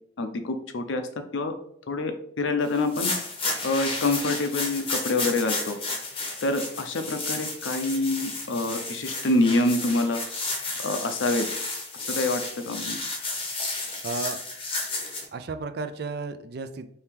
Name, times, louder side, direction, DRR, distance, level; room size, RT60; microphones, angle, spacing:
voice 1, 0.2-1.0 1.3-1.5 1.9-3.1 3.6-5.8 6.4-10.2 10.8-11.5 12.0-13.0, left 2 dB, 85° left, 7 dB, 0.6 m, -26 dB
sound 1, 2.7-15.2, left 3 dB, 30° left, 0.7 m, -32 dB
voice 2, 14.0-14.4 15.3-16.9, right 3 dB, 55° right, 10 dB, 0.4 m, -33 dB
4.4 x 2.8 x 3.6 m, 0.68 s
head